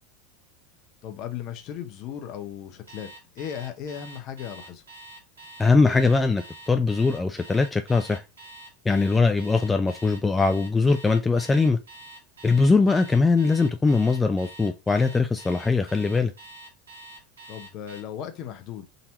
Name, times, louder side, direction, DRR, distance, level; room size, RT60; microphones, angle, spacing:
voice 1, 1.0-3.1 3.3-4.8 17.5-18.9, left 9 dB, 50° left, 0.8 m, -36 dB
Alarm, 2.9-18.0, right 1 dB, 90° right, 1.5 m, -45 dB
voice 2, 5.6-8.2 8.9-11.8 12.4-16.3, left 4 dB, 15° left, 0.4 m, -21 dB
4.0 x 2.8 x 4.3 m
hypercardioid pair, 90°, 0 cm